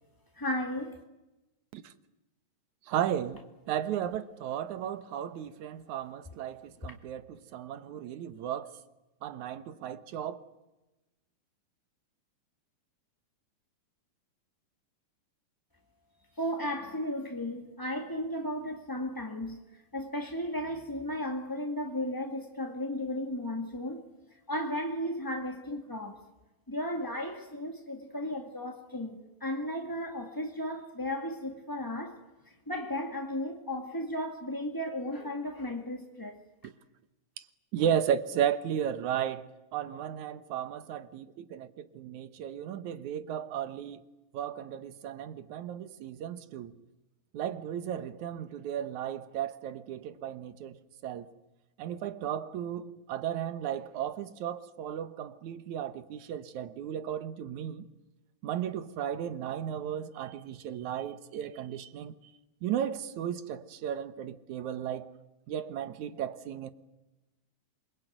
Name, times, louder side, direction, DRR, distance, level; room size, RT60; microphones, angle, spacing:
voice 1, 0.4-1.0 16.4-19.6 19.9-24.0 24.5-26.2 26.7-32.2 32.7-36.4, left 1 dB, 15° left, 0.7 m, -35 dB
voice 2, 2.9-3.4 3.7-8.7 9.2-10.4 36.6-36.7 37.7-39.5 39.7-44.0 44.3-46.7 47.3-51.3 51.8-57.9 58.4-62.1 62.6-65.1 65.5-66.7, right 9 dB, 65° right, 2.3 m, -34 dB
27.0 x 22.5 x 9.2 m
omnidirectional pair, 4.1 m